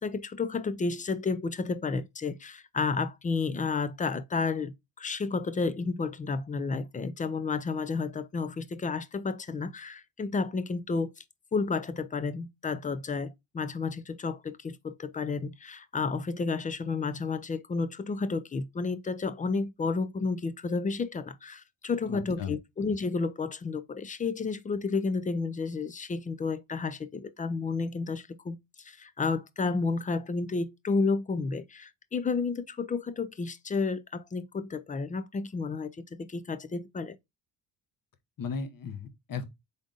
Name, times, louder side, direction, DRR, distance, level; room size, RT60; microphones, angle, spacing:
voice 1, 0.0-11.1 11.5-37.2, left 4 dB, 20° left, 0.3 m, -31 dB
voice 2, 22.0-22.6 38.4-39.5, left 5 dB, 45° left, 1.0 m, -36 dB
3.8 x 3.7 x 3.7 m
cardioid pair, 95°, 48 cm